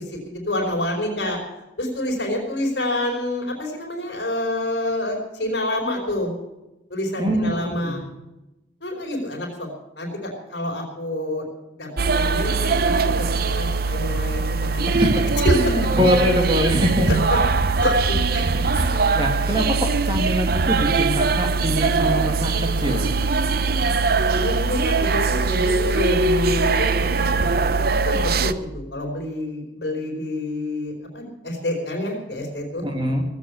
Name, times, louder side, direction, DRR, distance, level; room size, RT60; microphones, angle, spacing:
voice 1, 0.0-1.4 1.8-6.3 6.9-8.0 8.8-9.7 10.0-11.4 11.7-13.3 13.5-15.0 15.4-16.0 17.1-17.4 17.8-18.4 18.7-19.0 23.8-32.8, left 1 dB, 65° left, 0 dB, 4.6 m, -28 dB
voice 2, 7.2-8.0 14.8-15.3 15.6-17.1 19.1-23.1 32.8-33.2, equal, 25° right, 3 dB, 2.1 m, -23 dB
sound 1, 12.0-28.5, right 4 dB, 55° right, 0.7 m, -21 dB
18.0 x 8.2 x 8.4 m, 1.0 s
head